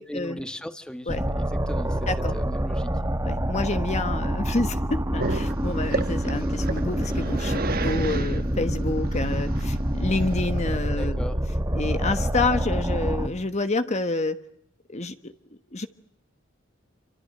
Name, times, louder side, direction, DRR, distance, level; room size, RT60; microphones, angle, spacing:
voice 1, 0.1-3.0 11.0-11.4, equal, 5° left, 10 dB, 1.6 m, -37 dB
sound 1, 1.1-13.3, equal, 15° right, 1.8 m, -26 dB
voice 2, 3.2-11.3 11.7-14.4 14.9-15.3 15.7-15.9, left 2 dB, 35° left, 9 dB, 1.4 m, -28 dB
Growling, 5.2-11.0, right 3 dB, 50° right, 1.3 m, -32 dB
28.0 x 25.5 x 7.8 m, 0.71 s
head